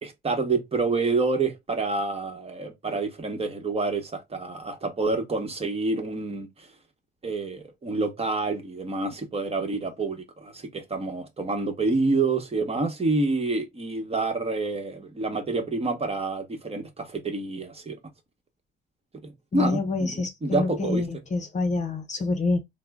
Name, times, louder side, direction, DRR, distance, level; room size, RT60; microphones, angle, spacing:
voice 1, 0.0-6.7 7.2-18.0 19.2-21.0, right 3 dB, 30° right, 1.1 m, -28 dB
voice 2, 19.5-22.6, left 3 dB, 35° left, 0.6 m, -27 dB
3.6 x 2.1 x 3.5 m
cardioid pair, 90°, 20 cm